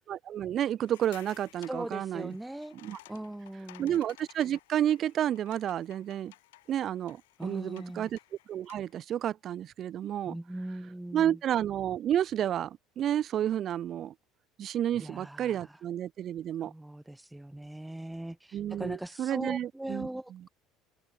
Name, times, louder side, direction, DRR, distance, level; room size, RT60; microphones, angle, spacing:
voice 1, 0.1-2.3 2.8-3.0 3.8-6.3 6.7-8.2 8.5-10.3 11.1-14.1 14.6-16.7 18.5-20.1, right 10 dB, 50° right, 2.0 m, -31 dB
sound 1, 0.8-9.0, left 19 dB, 90° left, 7.5 m, -56 dB
voice 2, 1.7-2.8 3.1-4.0 7.4-8.1 10.3-11.4 14.9-15.8 16.6-20.3, right 1 dB, 5° right, 6.2 m, -40 dB
supercardioid pair, 90°, 0 cm